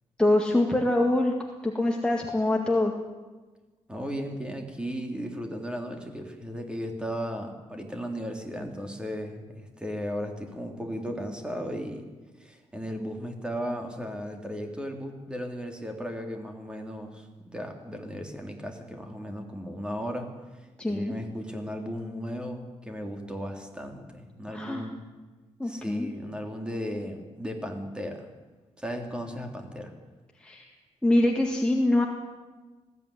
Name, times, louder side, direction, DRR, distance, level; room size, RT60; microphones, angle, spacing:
voice 1, 0.2-1.3 1.6-2.9 20.8-21.1 24.5-24.8 25.6-26.1 30.4-30.7 31.0-32.1, left 1 dB, 10° left, 0 dB, 2.0 m, -24 dB
voice 2, 3.9-12.1 12.4-20.3 20.9-25.0 25.6-28.3 28.8-29.9, equal, 10° right, 3 dB, 3.1 m, -35 dB
20.0 x 15.0 x 10.0 m, 1.3 s
wide cardioid pair, 130°, 12 cm